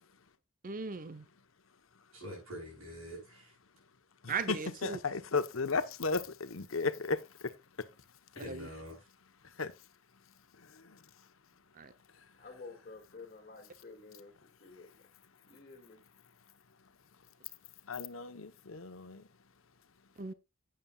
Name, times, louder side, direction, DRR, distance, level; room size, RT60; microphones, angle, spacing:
voice 1, 0.6-1.3 4.3-5.0 8.5-8.7 11.8-11.9 20.2-20.3, right 5 dB, 40° right, 0.7 m, -37 dB
voice 2, 2.1-3.5 8.3-9.1, equal, 90° right, 6.5 m, -45 dB
voice 3, 4.2-7.9 9.4-9.8 10.5-11.3 12.1-12.4 14.7-14.8 17.8-19.3, left 4 dB, 75° left, 1.0 m, -36 dB
voice 4, 12.4-15.0 15.5-16.0, left 3 dB, 40° left, 2.1 m, -51 dB
11.0 x 8.9 x 2.3 m
head